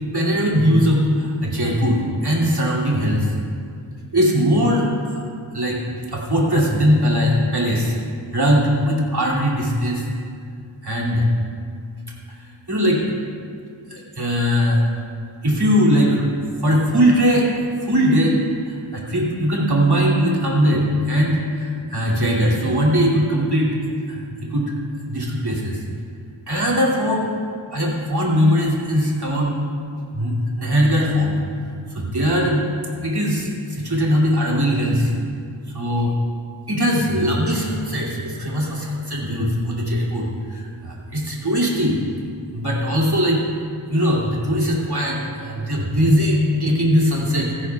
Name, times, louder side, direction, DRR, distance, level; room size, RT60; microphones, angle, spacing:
voice 1, 0.0-3.3 4.1-5.2 5.5-5.8 6.1-7.9 8.3-10.0 10.8-11.2 12.7-13.0 13.9-14.8 15.4-16.3 16.6-17.5 17.8-18.4 18.7-23.7 24.1-24.2 24.5-24.7 25.1-25.8 26.5-27.2 27.7-29.5 30.1-31.3 31.9-32.7 33.0-35.1 35.7-36.1 36.7-42.0 42.5-43.4 43.9-47.7, equal, 50° right, -5 dB, 2.7 m, -20 dB
16.5 x 16.0 x 2.3 m, 2.3 s
wide cardioid pair, 45°, 50 cm